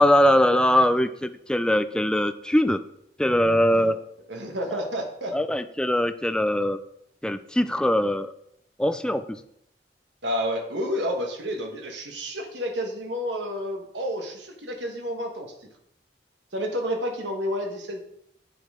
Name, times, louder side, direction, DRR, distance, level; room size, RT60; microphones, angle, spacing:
voice 1, 0.0-2.8 3.2-4.0 5.3-6.8 7.2-8.3 8.8-9.2, left 1 dB, 5° left, 10 dB, 0.4 m, -21 dB
voice 2, 4.3-5.3 10.2-15.5 16.5-18.0, equal, 80° right, 2 dB, 1.4 m, -30 dB
8.6 x 7.7 x 3.7 m, 0.75 s
head